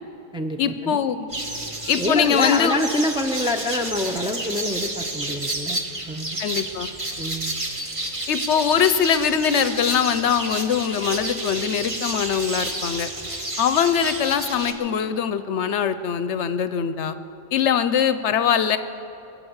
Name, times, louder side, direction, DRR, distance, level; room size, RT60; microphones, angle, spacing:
voice 1, 0.6-1.2 1.9-2.8 6.4-6.9 8.3-13.1 13.6-17.2 17.5-18.8, left 8 dB, 70° left, 12 dB, 0.9 m, -22 dB
sound 1, 1.3-14.7, right 1 dB, 25° right, 1.2 m, -30 dB
voice 2, 1.9-5.8 6.1-6.4 7.2-7.6, left 1 dB, 5° right, 4 dB, 0.5 m, -26 dB
23.0 x 7.7 x 7.9 m, 3.0 s
omnidirectional pair, 1.3 m